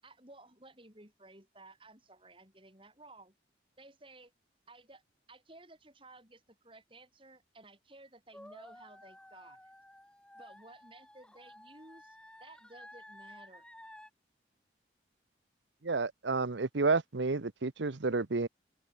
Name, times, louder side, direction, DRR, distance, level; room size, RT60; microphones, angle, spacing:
voice 1, 0.0-3.3 3.8-4.3 4.7-5.0 5.3-9.6 10.3-13.7, right 2 dB, 30° right, 7.6 m, -56 dB
sound 1, 8.3-14.1, left 1 dB, 5° left, 1.7 m, -54 dB
voice 2, 15.8-18.5, right 3 dB, 80° right, 0.9 m, -30 dB
open air
head